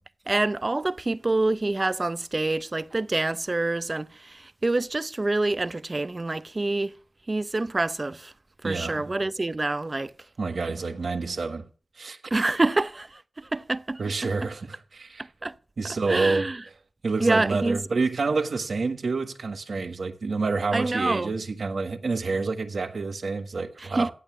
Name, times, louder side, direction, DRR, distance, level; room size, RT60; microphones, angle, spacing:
voice 1, 0.3-6.9 7.3-8.3 8.6-10.1 12.3-14.5 15.4-15.5 16.1-16.6 17.2-17.8 20.7-21.3 23.8-24.1, right 2 dB, 30° right, 0.6 m, -26 dB
voice 2, 8.6-9.2 10.4-11.7 12.0-12.2 14.0-15.2 15.8-16.5 17.0-24.1, right 4 dB, 70° right, 1.4 m, -28 dB
15.5 x 9.0 x 6.0 m
wide cardioid pair, 110°, 0 cm